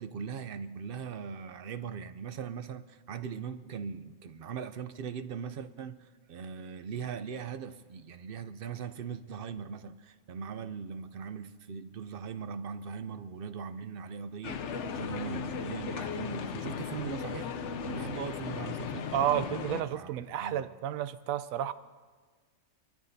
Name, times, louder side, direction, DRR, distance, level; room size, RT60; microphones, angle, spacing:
voice 1, 0.0-17.5 17.8-19.6 19.9-20.1 20.4-20.6, right 6 dB, 60° right, 0.6 m, -40 dB
sound 1, 14.4-19.8, left 6 dB, 65° left, 0.9 m, -36 dB
voice 2, 19.1-21.7, right 11 dB, 85° right, 1.0 m, -31 dB
25.0 x 13.5 x 2.7 m
omnidirectional pair, 1.4 m